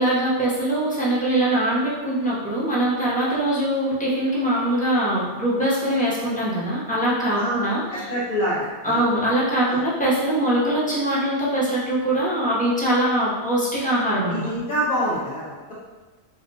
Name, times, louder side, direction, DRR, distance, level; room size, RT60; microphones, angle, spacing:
voice 1, 0.0-8.1 8.8-14.4, right 1 dB, 10° left, -8 dB, 0.4 m, -22 dB
voice 2, 7.9-9.0 9.7-9.8 14.3-15.7, equal, 50° left, -11 dB, 1.0 m, -26 dB
4.8 x 2.1 x 2.7 m, 1.2 s
omnidirectional pair, 1.5 m